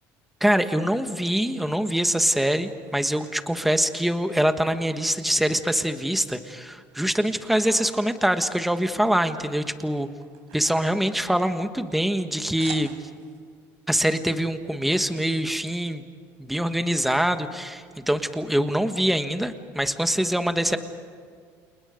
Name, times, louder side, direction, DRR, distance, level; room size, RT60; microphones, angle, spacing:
voice 1, 0.4-10.1 10.5-12.9 13.9-16.0 16.4-20.8, equal, ahead, 8 dB, 1.3 m, -24 dB
sound 1, 1.1-3.4 3.9-5.0 5.3-6.4 6.7-9.3 9.6-13.4, right 9 dB, 85° right, 4.3 m, -48 dB
30.0 x 29.0 x 5.2 m, 2.1 s
cardioid pair, 150°, 6 cm